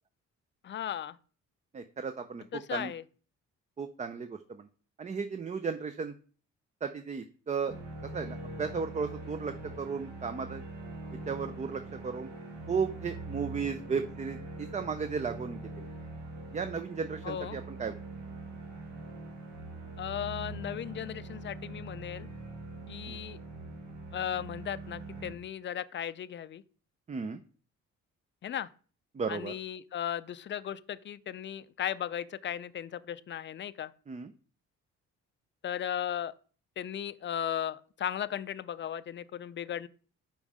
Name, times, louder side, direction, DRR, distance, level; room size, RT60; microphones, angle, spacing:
voice 1, 0.6-1.2 2.5-3.0 17.2-17.6 20.0-22.3 22.9-23.4 24.1-26.6 28.4-28.7 29.3-33.9 35.6-36.3 36.8-39.9, left 10 dB, 40° left, 0.4 m, -36 dB
voice 2, 1.7-2.9 3.8-4.7 5.0-6.1 6.8-7.7 8.1-10.6 11.1-12.3 12.7-15.9 16.5-17.9 23.1-23.2 27.1-27.4 29.1-29.5 34.1-34.3, right 5 dB, 25° right, 0.4 m, -35 dB
sound 1, 7.7-25.4, right 2 dB, 65° right, 1.5 m, -43 dB
5.3 x 4.3 x 4.9 m
cardioid pair, 90°, 30 cm